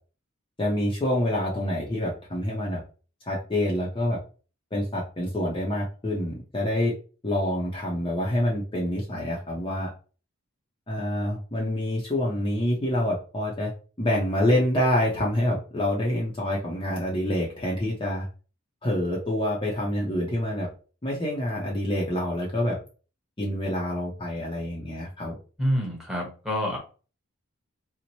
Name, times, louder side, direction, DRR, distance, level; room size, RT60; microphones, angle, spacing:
voice 1, 0.6-2.8 3.2-4.2 4.7-6.9 7.2-9.9 10.9-13.7 14.0-18.3 18.8-20.7 21.0-22.8 23.4-25.3, left 1 dB, 25° left, -4 dB, 0.7 m, -27 dB
voice 2, 25.6-26.8, equal, ahead, -1 dB, 1.0 m, -27 dB
3.0 x 2.1 x 4.1 m, 0.36 s
head